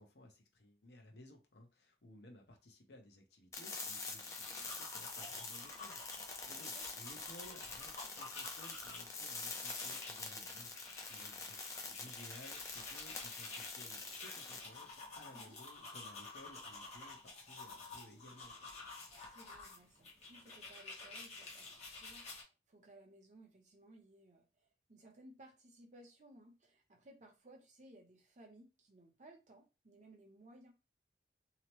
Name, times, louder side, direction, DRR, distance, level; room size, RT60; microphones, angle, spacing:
voice 1, 0.0-11.6 11.9-18.7, left 1 dB, 65° left, 0.8 m, -58 dB
sound 1, 3.5-14.6, left 4 dB, 15° left, 0.4 m, -46 dB
sound 2, 4.0-22.4, left 3 dB, 35° left, 1.0 m, -51 dB
voice 2, 6.4-6.8 15.3-15.6 19.1-30.7, right 1 dB, 40° right, 0.7 m, -60 dB
2.8 x 2.0 x 3.0 m
head